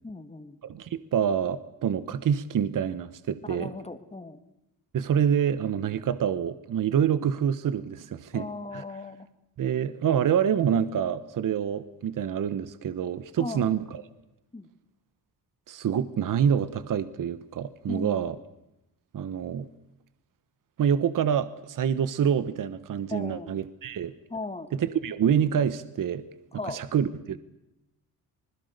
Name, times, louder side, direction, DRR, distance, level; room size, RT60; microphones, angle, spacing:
voice 1, 0.0-0.6 3.4-4.4 8.3-9.3 13.4-13.7 14.5-14.7 17.9-18.3 23.1-23.5 24.3-24.7 26.5-26.8, left 3 dB, 15° left, 9 dB, 2.2 m, -37 dB
voice 2, 0.6-3.7 4.9-8.5 8.7-8.8 9.6-14.0 15.7-18.4 19.1-19.7 20.8-24.1 24.7-26.2 26.6-27.4, right 8 dB, 60° right, 14 dB, 1.2 m, -26 dB
26.5 x 21.0 x 6.7 m, 0.88 s
cardioid pair, 100°, 36 cm